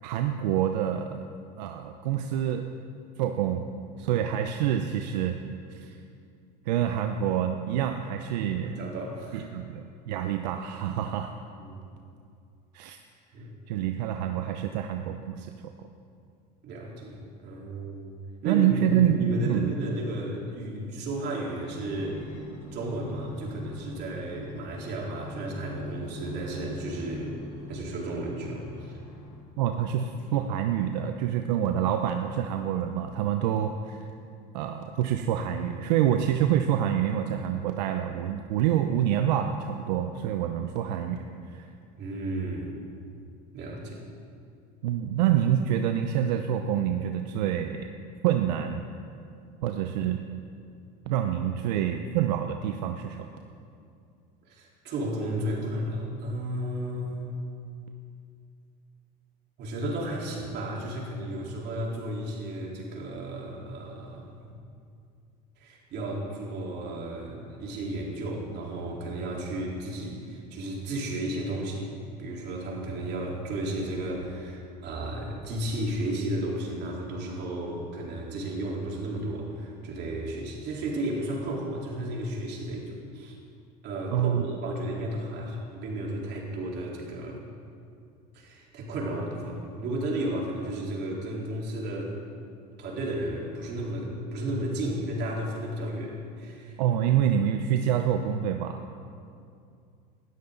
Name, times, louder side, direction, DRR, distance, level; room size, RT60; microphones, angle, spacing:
voice 1, 0.0-1.2 1.6-2.7 3.2-3.7 4.0-5.4 5.7-6.0 6.7-8.8 9.3-11.3 12.7-13.0 13.7-15.5 18.4-19.7 29.6-34.1 34.5-41.7 44.8-47.9 48.2-48.9 49.6-50.3 51.1-53.3 84.1-84.5 96.8-98.8, right 10 dB, 85° right, 6 dB, 0.8 m, -27 dB
voice 2, 8.4-9.5 11.6-11.9 13.3-13.5 16.6-18.2 18.4-22.4 22.7-27.4 27.7-29.0 42.0-42.7 43.5-44.0 54.5-57.3 59.6-64.5 65.6-83.3 83.8-87.4 88.3-92.2 92.8-96.8, right 1 dB, 55° right, -3 dB, 4.0 m, -33 dB
sound 1, 21.6-29.6 30.2-31.5 32.1-32.2, left 2 dB, 60° left, 2.7 m, -43 dB
19.0 x 13.0 x 4.0 m, 2.4 s
supercardioid pair, 100°, 21 cm